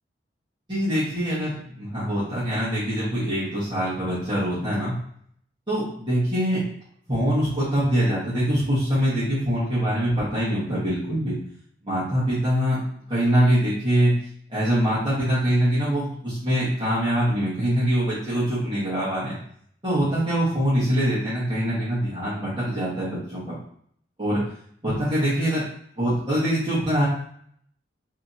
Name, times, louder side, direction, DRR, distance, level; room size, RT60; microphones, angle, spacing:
voice 1, 0.7-4.9 5.7-6.6 7.1-11.3 11.8-12.8 13.1-14.1 14.5-19.4 19.8-23.6 24.2-24.4 24.8-25.6 26.0-27.1, equal, 25° right, -12 dB, 1.2 m, -23 dB
3.4 x 2.8 x 2.6 m, 0.64 s
head